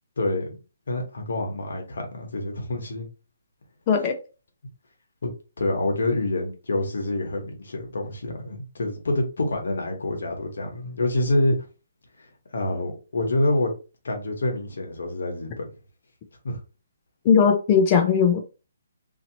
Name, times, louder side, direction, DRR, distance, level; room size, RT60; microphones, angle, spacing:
voice 1, 0.2-0.6 0.9-3.1 5.2-5.3 5.6-11.5 12.2-13.7 14.0-15.7 16.4-16.6, left 2 dB, 75° left, 1.1 m, -27 dB
voice 2, 3.9-4.2 17.2-18.4, left 6 dB, 25° left, 0.6 m, -18 dB
2.8 x 2.8 x 2.7 m
hypercardioid pair, 160°, 0 cm